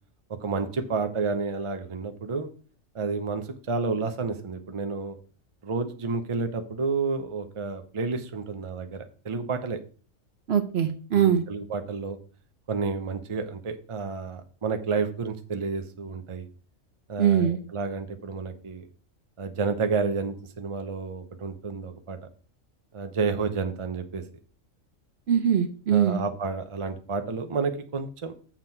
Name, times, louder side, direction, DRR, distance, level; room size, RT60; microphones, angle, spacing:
voice 1, 0.4-2.5 2.9-5.2 5.6-9.8 11.1-12.2 12.7-16.5 17.1-18.9 19.4-22.2 22.9-24.2 25.9-28.3, right 4 dB, 30° right, 7 dB, 0.7 m, -30 dB
voice 2, 10.5-11.4 17.2-17.6 25.3-26.2, right 9 dB, 55° right, 8 dB, 0.9 m, -22 dB
7.5 x 6.0 x 4.4 m, 0.41 s
omnidirectional pair, 1.4 m